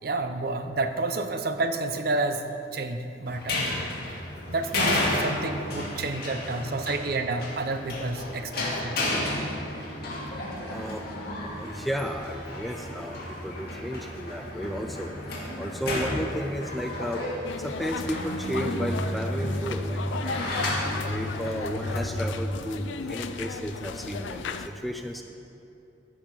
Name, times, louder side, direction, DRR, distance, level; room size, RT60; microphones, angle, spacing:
voice 1, 0.0-2.5 2.7-3.7 4.5-9.1, right 2 dB, 55° right, 8 dB, 0.6 m, -30 dB
sound 1, 3.3-22.0, left 1 dB, 55° left, 2.1 m, -33 dB
voice 2, 10.7-11.1 11.4-15.1 15.6-17.2 17.6-20.5 21.0-25.2, equal, ahead, 4 dB, 0.4 m, -33 dB
sound 2, 17.4-24.7, left 4 dB, 80° left, 0.4 m, -36 dB
sound 3, 17.8-23.8, equal, 70° right, 2.0 m, -34 dB
14.5 x 5.2 x 5.8 m, 2.7 s
head